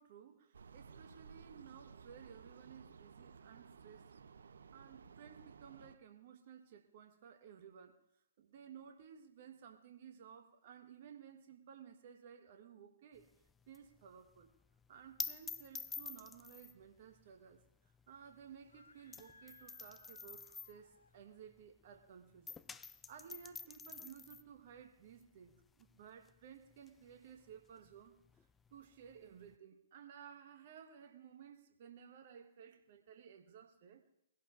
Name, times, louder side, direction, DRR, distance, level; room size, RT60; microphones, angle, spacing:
voice 1, 0.0-4.2 4.7-8.0 8.4-13.3 13.7-14.5 14.9-22.6 23.1-28.1 28.7-34.0, right 8 dB, 50° right, 1.2 m, -56 dB
sound 1, 0.5-6.0, right 5 dB, 75° right, 0.7 m, -57 dB
sound 2, 13.2-22.0 22.3-29.5, left 5 dB, 15° left, 0.4 m, -50 dB
Screaming, 18.6-21.4, left 4 dB, 85° left, 0.6 m, -64 dB
22.0 x 16.5 x 2.5 m
figure-of-eight pair, 120°, 0 cm